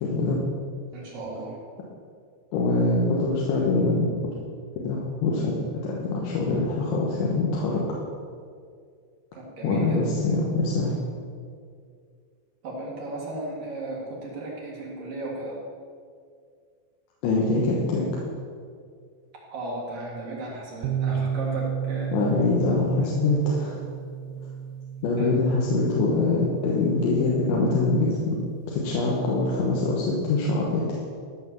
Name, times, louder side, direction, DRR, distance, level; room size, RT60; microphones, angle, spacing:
voice 1, 0.0-0.4 2.5-4.1 4.8-7.8 9.6-10.9 17.2-18.1 22.1-23.8 25.0-28.4 28.7-31.0, left 3 dB, 90° left, -3 dB, 3.7 m, -24 dB
voice 2, 0.9-1.6 9.3-10.0 12.6-15.6 19.5-22.1 23.0-23.1 25.2-25.3, right 2 dB, 55° right, -4 dB, 3.1 m, -35 dB
sound 1, 20.8-28.5, right 8 dB, 90° right, 2.3 m, -33 dB
14.0 x 6.0 x 7.0 m, 2.2 s
omnidirectional pair, 5.2 m